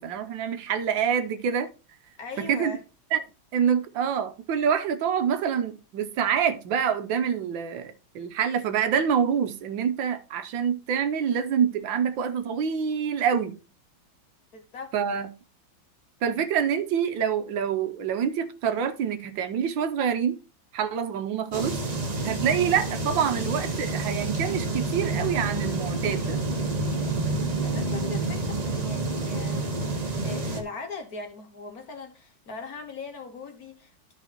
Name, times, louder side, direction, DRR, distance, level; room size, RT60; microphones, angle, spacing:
voice 1, 0.0-1.7 2.4-2.7 3.1-3.2 3.5-13.5 14.9-15.3 16.2-20.4 20.7-21.8 22.2-26.4, right 7 dB, 75° right, 1.5 m, -26 dB
voice 2, 2.2-2.8 14.5-14.9 27.6-29.9 30.2-34.1, left 3 dB, 50° left, 1.4 m, -39 dB
sound 1, 21.5-30.6, right 2 dB, 35° right, 0.7 m, -28 dB
12.5 x 4.8 x 2.9 m
omnidirectional pair, 2.2 m